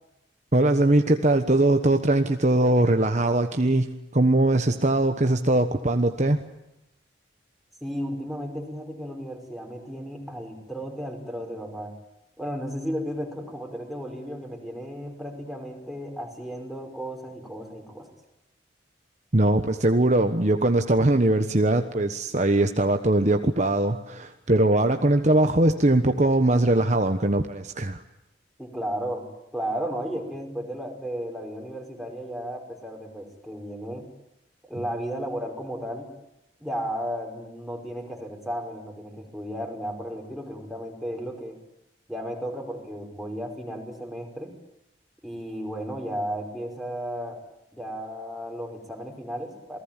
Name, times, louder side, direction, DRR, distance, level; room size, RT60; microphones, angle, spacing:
voice 1, 0.5-6.4 19.3-28.0, right 2 dB, 40° right, 6 dB, 1.3 m, -21 dB
voice 2, 7.8-11.9 12.4-18.1 28.6-34.1 34.6-36.1 36.6-41.6 42.1-44.5 45.2-47.4 47.7-49.8, equal, ahead, 3 dB, 5.4 m, -34 dB
28.0 x 19.5 x 9.0 m, 0.88 s
head